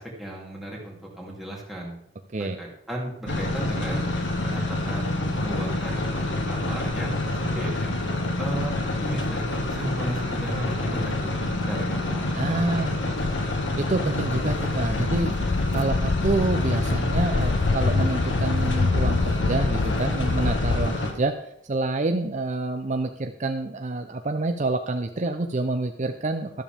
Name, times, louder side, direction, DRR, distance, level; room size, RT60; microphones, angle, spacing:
voice 1, 0.0-2.0 2.4-4.0 4.4-7.9 8.4-8.7 9.0-11.3 11.7-13.3, right 1 dB, ahead, -4 dB, 2.9 m, -35 dB
sound 1, 3.3-21.1, left 2 dB, 80° left, 1.8 m, -27 dB
voice 2, 12.3-13.0 13.8-15.4 15.7-21.3 21.7-26.5, right 2 dB, 40° right, 6 dB, 0.7 m, -27 dB
Walk footsteps, 13.2-20.9, left 4 dB, 40° left, 0.3 m, -27 dB
12.5 x 12.0 x 3.6 m, 0.72 s
head